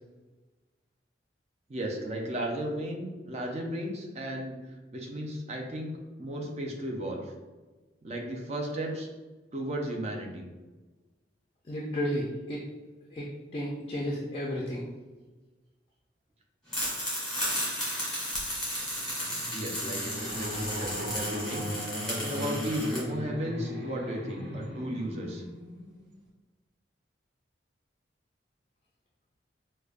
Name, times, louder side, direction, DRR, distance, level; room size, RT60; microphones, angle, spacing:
voice 1, 1.7-7.3 8.0-9.1 9.5-10.5 19.5-25.4, equal, 35° right, 1 dB, 0.5 m, -35 dB
voice 2, 11.7-12.6 13.1-14.8, equal, 30° left, -3 dB, 0.3 m, -33 dB
sound 1, 16.7-23.0, equal, 5° left, 1.3 m, -34 dB
sound 2, 18.8-26.2, equal, 85° right, 0.9 m, -38 dB
4.8 x 2.1 x 2.4 m, 1.3 s
head